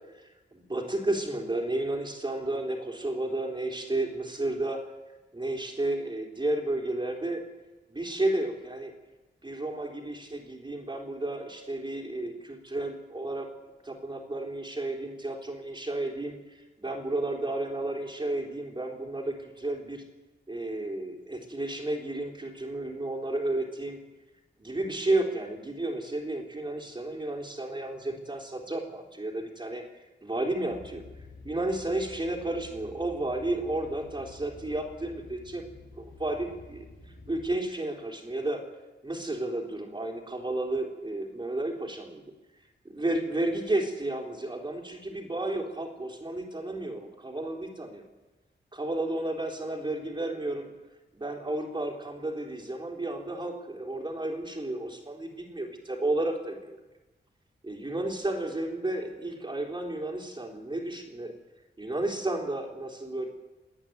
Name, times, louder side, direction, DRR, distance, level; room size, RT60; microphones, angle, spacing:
voice 1, 0.2-4.9 5.3-7.4 7.9-8.9 9.4-13.5 13.8-20.0 20.5-24.0 24.6-29.8 30.2-31.0 31.4-35.6 36.0-36.9 37.3-38.6 39.0-42.2 42.9-48.0 48.7-50.7 51.1-56.8 57.6-61.3 61.8-63.3, right 2 dB, 25° right, 1 dB, 3.8 m, -32 dB
sound 1, 30.7-37.6, left 3 dB, 80° left, 3.2 m, -49 dB
28.0 x 9.9 x 9.5 m, 1.1 s
wide cardioid pair, 105°, 20 cm